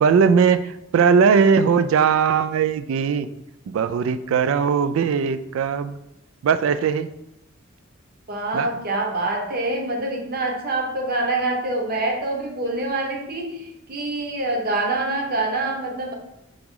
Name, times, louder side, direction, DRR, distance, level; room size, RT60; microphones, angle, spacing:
voice 1, 0.0-3.3 3.7-6.0 6.4-7.1 8.5-8.8, right 6 dB, 70° right, 13 dB, 0.3 m, -19 dB
voice 2, 8.3-16.1, right 2 dB, 50° right, 2 dB, 0.8 m, -25 dB
4.8 x 3.0 x 3.7 m, 0.85 s
head